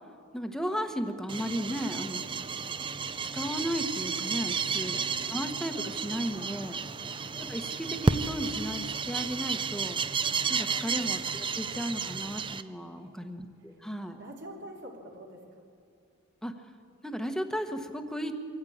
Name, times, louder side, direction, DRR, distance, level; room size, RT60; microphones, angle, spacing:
voice 1, 0.3-2.2 3.3-5.0 5.3-6.8 7.4-10.0 10.5-14.2 16.4-16.5 17.0-18.4, equal, 5° left, 6 dB, 1.2 m, -35 dB
sound 1, 1.3-12.6, right 5 dB, 25° right, 0.5 m, -32 dB
voice 2, 4.6-5.0 6.8-7.2 12.9-13.3 13.7-13.8 14.2-15.6, right 1 dB, 60° right, -1 dB, 3.4 m, -48 dB
23.5 x 14.0 x 8.7 m, 2.4 s
head